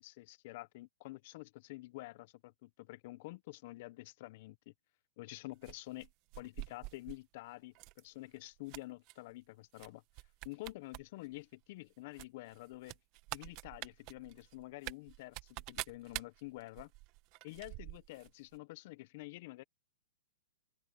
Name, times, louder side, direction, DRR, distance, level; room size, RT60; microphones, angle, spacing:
voice 1, 0.0-4.7 5.2-6.1 6.4-10.0 10.4-13.0 13.3-16.9 17.4-19.6, left 20 dB, 50° left, 1.2 m, -48 dB
sound 1, 5.6-7.2 7.7-8.0 8.4-9.1 9.8-9.9 10.1-11.0 11.3-11.4 12.2-18.3 18.5-18.6, right 23 dB, 40° right, 1.5 m, -46 dB
hypercardioid pair, 125°, 0 cm